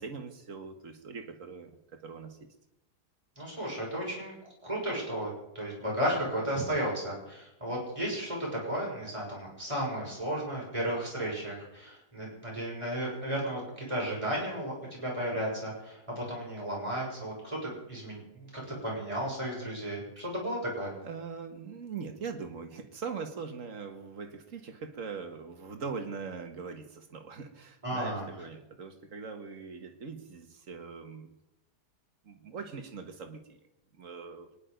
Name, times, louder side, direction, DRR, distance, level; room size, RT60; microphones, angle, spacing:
voice 1, 0.0-2.5 20.2-20.3 21.0-31.3 32.2-33.6 34.0-34.5, right 5 dB, 50° right, 6 dB, 1.8 m, -41 dB
voice 2, 3.4-4.3 4.6-5.3 5.5-20.9 27.8-28.2, equal, 20° right, -4 dB, 6.7 m, -34 dB
25.5 x 10.5 x 5.2 m, 0.87 s
omnidirectional pair, 1.8 m